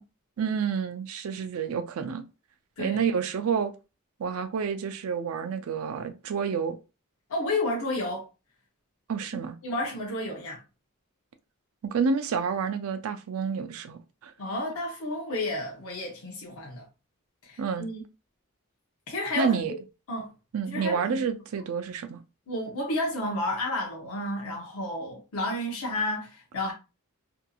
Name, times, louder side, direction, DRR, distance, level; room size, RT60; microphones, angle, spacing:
voice 1, 0.4-2.2 2.8-3.7 4.2-6.8 9.1-9.6 11.8-14.3 17.6-17.9 19.4-19.7 20.5-22.2, right 6 dB, 70° right, 0.4 m, -29 dB
voice 2, 7.3-8.3 9.3-10.6 14.4-16.8 17.4-18.0 19.1-19.8 20.1-20.3 20.7-21.2 22.5-26.7, left 1 dB, 75° left, 0.7 m, -31 dB
2.7 x 2.6 x 2.3 m
head